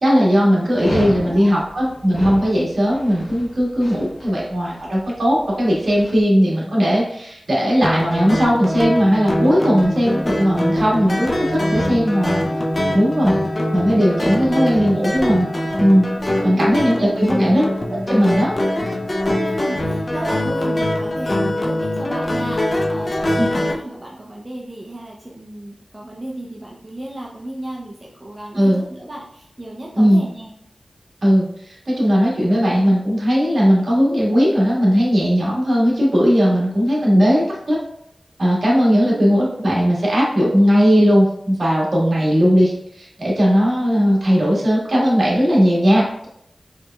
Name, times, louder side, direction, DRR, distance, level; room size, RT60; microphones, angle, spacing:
voice 1, 0.0-12.4 12.9-13.4 13.7-15.5 15.8-16.1 16.4-18.5 23.4-23.5 28.5-28.8 29.9-30.2 31.2-37.8 38.4-46.3, equal, 65° right, -5 dB, 1.4 m, -17 dB
voice 2, 0.7-1.5 14.4-14.5 16.3-17.4 19.3-30.5 39.0-39.6, right 1 dB, 25° right, -3 dB, 0.5 m, -34 dB
Dog, 0.8-6.2, left 1 dB, 80° left, 1.0 m, -32 dB
sound 1, 7.8-23.7, left 1 dB, 35° left, 0.6 m, -22 dB
4.7 x 3.2 x 2.2 m, 0.72 s
wide cardioid pair, 95°, 0 cm